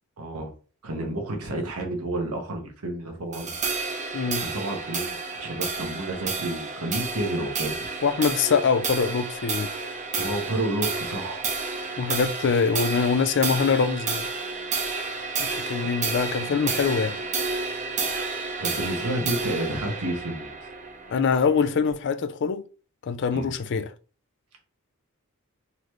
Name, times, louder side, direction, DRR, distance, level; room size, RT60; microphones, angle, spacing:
voice 1, 0.2-0.5 0.8-3.5 4.0-7.8 10.2-11.5 18.2-20.5 23.3-23.5, right 1 dB, 85° right, 1.1 m, -31 dB
sound 1, 3.3-21.9, right 4 dB, 35° right, 0.7 m, -31 dB
voice 2, 8.0-9.7 12.0-14.3 15.4-17.1 21.1-22.6 23.0-23.9, left 5 dB, 50° left, 0.4 m, -24 dB
4.1 x 3.1 x 3.0 m
head